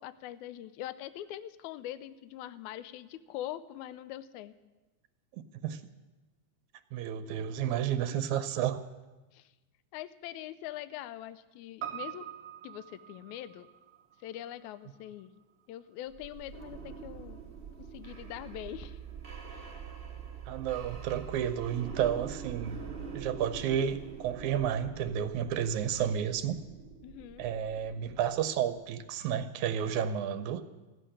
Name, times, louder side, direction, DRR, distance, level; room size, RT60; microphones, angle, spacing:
voice 1, 0.0-4.5 8.1-8.4 9.3-9.5 9.9-12.3 12.6-13.7 14.2-15.3 15.7-17.4 17.8-19.0 19.5-19.7 27.0-27.5, left 12 dB, 80° left, 15 dB, 2.0 m, -43 dB
voice 2, 5.3-5.8 6.9-8.8 20.5-22.8 23.1-26.6 27.4-30.6, right 9 dB, 80° right, 11 dB, 2.1 m, -31 dB
Piano, 11.8-16.3 16.6-16.7, right 10 dB, 60° right, 1.5 m, -45 dB
sound 1, 16.1-28.9, right 6 dB, 35° right, 0.9 m, -45 dB
15.0 x 7.8 x 9.9 m, 1.2 s
omnidirectional pair, 3.4 m